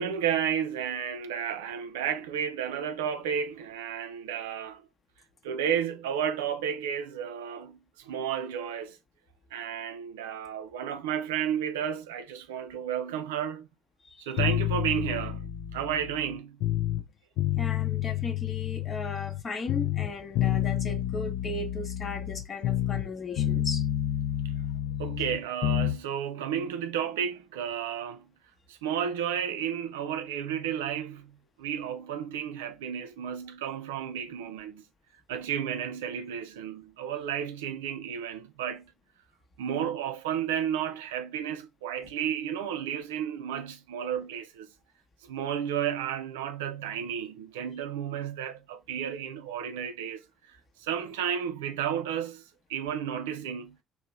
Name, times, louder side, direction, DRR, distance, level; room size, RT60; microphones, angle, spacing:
voice 1, 0.0-4.8 5.4-9.0 9.5-13.7 14.2-16.6 25.0-28.2 28.7-34.8 35.3-38.9 39.6-44.7 45.3-50.2 50.5-52.4 52.7-53.8, right 9 dB, 75° right, 0.3 m, -32 dB
sound 1, 14.4-17.0 17.4-19.4 19.7-23.1 23.4-26.0, left 12 dB, 65° left, 0.4 m, -29 dB
voice 2, 17.6-23.8, left 2 dB, 40° left, 0.8 m, -36 dB
2.8 x 2.0 x 3.5 m
figure-of-eight pair, 50°, 0 cm